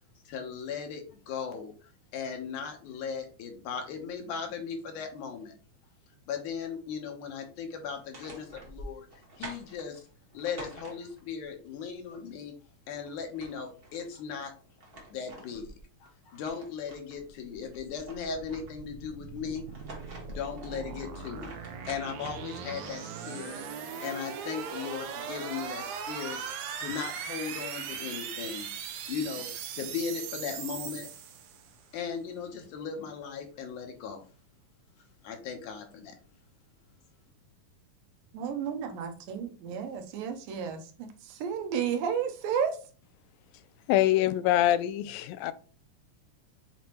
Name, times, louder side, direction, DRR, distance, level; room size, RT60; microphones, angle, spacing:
voice 1, 0.3-5.5 6.3-9.1 9.4-10.1 10.3-12.5 12.9-14.5 15.1-15.7 16.0-19.7 20.3-28.7 29.1-29.5 29.7-31.1 31.9-34.2 35.2-36.2, left 6 dB, 70° left, 2.4 m, -37 dB
sound 1, 7.9-11.4 12.9-13.0 13.2-14.1 14.6-17.2 17.6-19.0 19.6-23.2, right 1 dB, 60° right, 0.6 m, -48 dB
sound 2, 17.3-31.8, right 7 dB, 75° right, 1.8 m, -39 dB
voice 2, 38.3-42.8, right 7 dB, 90° right, 2.7 m, -32 dB
voice 3, 43.9-45.5, left 13 dB, 90° left, 2.3 m, -24 dB
7.4 x 4.3 x 3.0 m
omnidirectional pair, 3.9 m